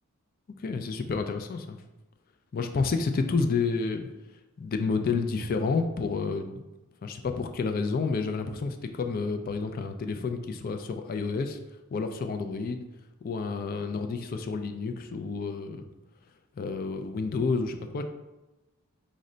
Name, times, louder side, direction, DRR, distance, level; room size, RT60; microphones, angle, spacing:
voice 1, 0.6-1.8 2.5-4.1 4.6-6.7 7.0-11.6 11.9-12.8 13.2-15.9 16.6-18.0, left 4 dB, 40° left, 7 dB, 0.3 m, -30 dB
5.1 x 2.1 x 3.7 m, 1.0 s
head